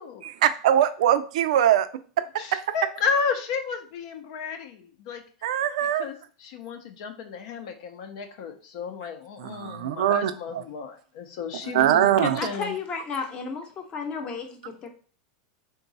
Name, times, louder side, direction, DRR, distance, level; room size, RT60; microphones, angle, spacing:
voice 1, 0.2-1.9 2.5-2.7 5.4-6.1 9.4-10.6 11.6-12.5, right 11 dB, 75° right, 12 dB, 0.4 m, -22 dB
voice 2, 2.4-5.2 6.0-6.1 6.4-12.7, left 5 dB, 65° left, 5 dB, 0.6 m, -32 dB
voice 3, 12.4-14.9, left 5 dB, 30° left, 4 dB, 0.8 m, -33 dB
3.8 x 2.3 x 4.0 m, 0.41 s
supercardioid pair, 130°, 4 cm